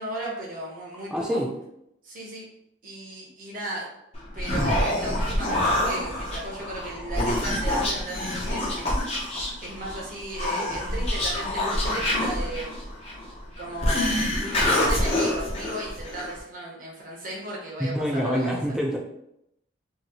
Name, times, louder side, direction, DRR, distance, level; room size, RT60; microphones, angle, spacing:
voice 1, 0.0-1.4 2.0-2.5 2.8-3.9 4.3-9.0 9.6-12.8 13.6-18.6, right 1 dB, 45° right, -3 dB, 0.8 m, -35 dB
voice 2, 1.1-1.5 17.8-19.0, equal, 5° right, -1 dB, 0.4 m, -26 dB
Human voice, 4.1-16.4, left 1 dB, 30° left, 0.7 m, -26 dB
2.8 x 2.8 x 2.8 m, 0.79 s
head